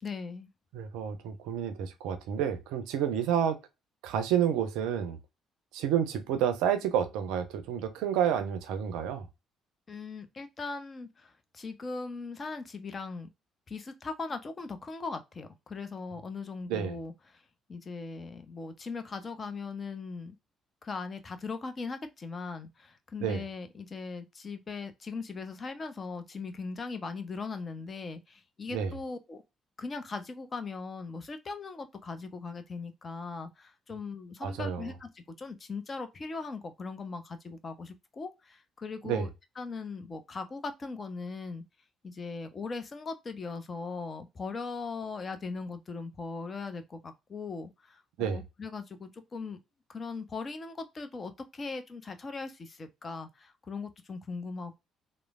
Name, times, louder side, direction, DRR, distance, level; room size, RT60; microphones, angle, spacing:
voice 1, 0.0-0.5 9.9-13.3 13.7-17.1 17.7-20.4 20.8-29.4 29.8-39.3 39.6-41.6 42.0-49.6 49.9-54.8, left 4 dB, 35° left, 0.5 m, -39 dB
voice 2, 0.7-3.6 4.0-5.2 5.7-9.3 16.7-17.0 23.2-23.4 28.7-28.9 34.4-34.8 39.0-39.3 48.2-48.4, right 9 dB, 65° right, 0.4 m, -29 dB
3.0 x 2.0 x 2.3 m
figure-of-eight pair, 45°, 0 cm